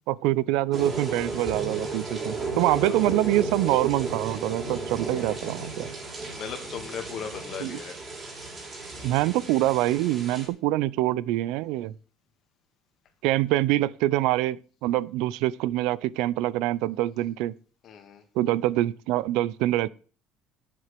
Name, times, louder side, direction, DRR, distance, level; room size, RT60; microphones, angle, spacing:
voice 1, 0.1-5.9 7.6-7.8 9.0-11.9 13.2-14.6 14.8-17.5 18.4-19.9, right 15 dB, 70° right, 0.5 m, -25 dB
sound 1, 0.7-10.5, right 3 dB, 20° right, 3.2 m, -34 dB
voice 2, 5.1-6.0 6.3-8.0 17.8-18.2, left 7 dB, 35° left, 2.2 m, -39 dB
11.0 x 7.9 x 6.7 m
cardioid pair, 175°, 0 cm